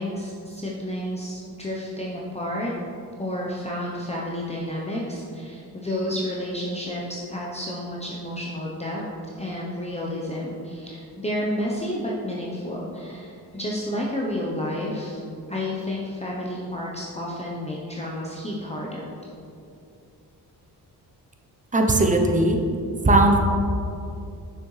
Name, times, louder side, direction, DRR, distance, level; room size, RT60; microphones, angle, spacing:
voice 1, 0.0-2.7 3.2-9.0 9.4-15.2 15.5-19.1, left 1 dB, 15° left, -4 dB, 0.7 m, -30 dB
voice 2, 21.7-22.6 23.0-23.4, right 2 dB, 20° right, 2 dB, 0.7 m, -18 dB
6.5 x 6.2 x 3.2 m, 2.6 s
cardioid pair, 90°, 41 cm